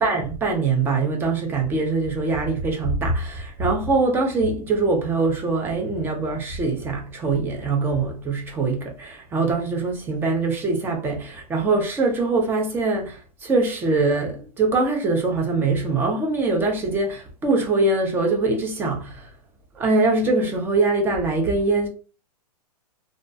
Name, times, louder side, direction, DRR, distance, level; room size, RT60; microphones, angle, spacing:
voice 1, 0.0-19.3 19.7-21.9, right 3 dB, 10° right, 0.4 m, -23 dB
2.3 x 2.0 x 2.6 m
hypercardioid pair, 145°, 20 cm